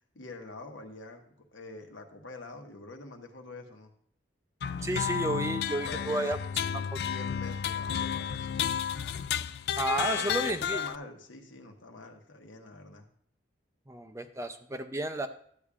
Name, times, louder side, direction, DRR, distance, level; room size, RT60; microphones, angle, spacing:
voice 1, 0.1-3.9 5.8-6.4 7.0-8.7 10.0-13.1, left 2 dB, 85° left, 4 dB, 1.2 m, -46 dB
sound 1, 4.6-11.0, left 8 dB, 55° left, 0.3 m, -32 dB
voice 2, 4.8-6.4 6.9-7.0 9.8-10.8 13.9-15.3, right 2 dB, 15° right, 8 dB, 0.4 m, -32 dB
12.5 x 8.3 x 2.4 m, 0.64 s
head